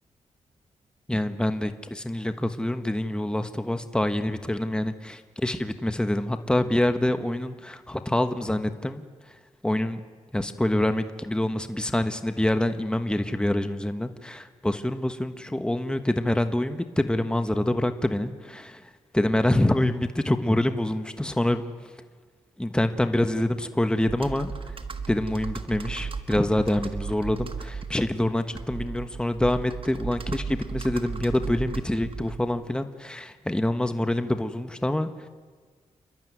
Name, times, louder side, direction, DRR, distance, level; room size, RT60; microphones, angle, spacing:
voice 1, 1.1-9.0 9.6-10.0 10.3-18.8 19.1-21.6 22.6-24.8 25.1-35.1, left 1 dB, 5° left, 8 dB, 1.3 m, -26 dB
Computer keyboard, 24.0-32.6, right 5 dB, 45° right, 1.4 m, -36 dB
29.0 x 12.0 x 9.4 m, 1.5 s
cardioid pair, 75°, 12 cm